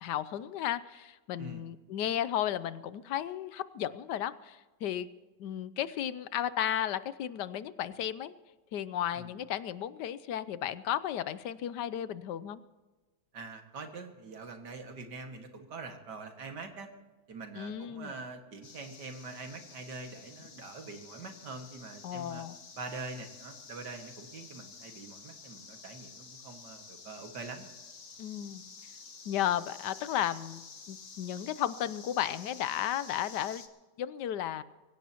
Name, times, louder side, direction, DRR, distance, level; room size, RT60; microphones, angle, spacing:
voice 1, 0.0-5.1 5.4-8.3 8.7-12.6 17.6-18.1 22.0-22.6 28.2-28.7 29.3-30.6 30.9-33.6 34.0-34.6, left 11 dB, 75° left, 15 dB, 1.3 m, -34 dB
voice 2, 13.3-16.9 17.3-22.4 22.8-27.7, right 3 dB, 70° right, 5 dB, 2.4 m, -44 dB
sound 1, 18.6-33.7, left 5 dB, 50° left, 1.7 m, -51 dB
24.0 x 16.5 x 2.9 m, 1.2 s
omnidirectional pair, 1.9 m